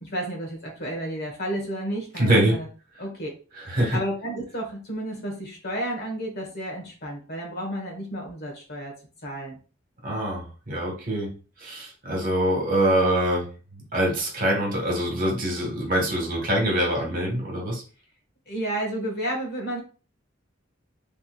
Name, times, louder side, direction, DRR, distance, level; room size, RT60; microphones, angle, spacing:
voice 1, 0.0-2.7 3.0-3.3 3.9-8.9 9.2-9.6 18.5-19.8, right 1 dB, 55° left, 0 dB, 1.5 m, -31 dB
voice 2, 2.2-2.5 3.6-4.0 10.0-11.3 11.6-17.8, right 1 dB, 45° right, -1 dB, 1.6 m, -24 dB
4.3 x 3.5 x 2.5 m, 0.36 s
head